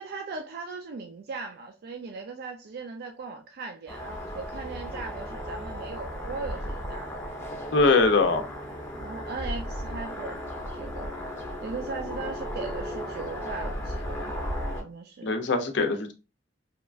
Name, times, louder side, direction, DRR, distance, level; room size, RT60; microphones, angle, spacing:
voice 1, 0.0-7.2 9.0-11.1 11.6-14.3 14.7-15.4, right 4 dB, 55° right, 0.3 m, -38 dB
sound 1, 3.9-14.8, equal, 15° left, 0.6 m, -35 dB
voice 2, 7.7-8.4 15.2-16.1, left 3 dB, 65° left, 0.5 m, -22 dB
2.9 x 2.4 x 2.2 m
head